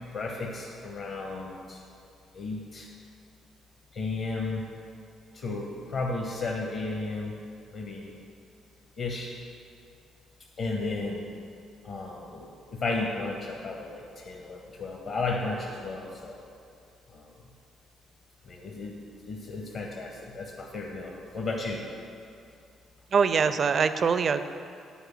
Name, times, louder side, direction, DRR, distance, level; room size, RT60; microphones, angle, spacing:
voice 1, 0.1-1.8 2.3-2.9 3.9-4.6 5.3-7.4 7.7-8.1 9.0-9.3 10.6-11.2 11.8-16.4 17.1-17.3 18.4-21.8, left 3 dB, 55° left, 0 dB, 1.1 m, -34 dB
voice 2, 23.1-24.4, right 6 dB, 45° right, 11 dB, 0.4 m, -23 dB
10.0 x 4.9 x 7.7 m, 2.4 s
figure-of-eight pair, 45°, 0 cm